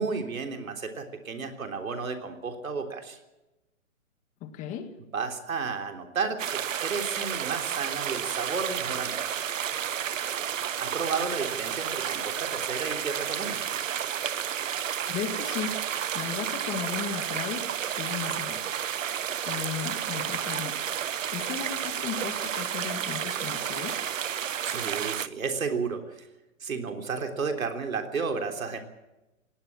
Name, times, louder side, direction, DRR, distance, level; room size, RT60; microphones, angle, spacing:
voice 1, 0.0-3.2 5.1-9.4 10.8-13.6 24.6-26.3 26.6-28.8, right 5 dB, 90° right, 5 dB, 3.7 m, -32 dB
voice 2, 4.4-4.9 15.1-17.7 18.0-18.7 19.5-20.9 21.3-24.1, left 8 dB, 20° left, 9 dB, 1.7 m, -36 dB
sound 1, 6.4-25.3, right 9 dB, 70° right, 1.2 m, -31 dB
20.0 x 18.5 x 7.5 m, 1.0 s
hypercardioid pair, 155°, 40 cm